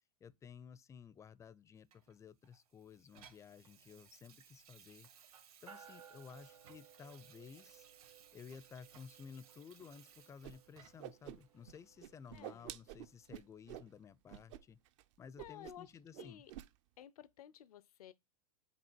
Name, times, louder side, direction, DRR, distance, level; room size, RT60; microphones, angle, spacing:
voice 1, 0.2-5.1 5.6-7.9 8.3-14.8 15.2-16.4, left 6 dB, 15° left, 0.4 m, -55 dB
Water tap faucet / Sink (filling or washing), 1.9-11.2 11.7-11.8, right 8 dB, 70° right, 1.8 m, -63 dB
sound 1, 5.7-13.4, right 8 dB, 85° right, 2.0 m, -62 dB
Whoosh swoosh swish, 10.4-10.5 10.8-11.7 12.0-13.9 14.3-14.6 14.9-15.0 15.4-15.9 16.1-16.7, right 13 dB, 55° right, 0.6 m, -49 dB
voice 2, 12.3-12.7 15.4-15.9 16.2-16.5 17.0-18.1, left 10 dB, 75° left, 0.5 m, -54 dB
8.0 x 2.8 x 4.5 m
hypercardioid pair, 105°, 19 cm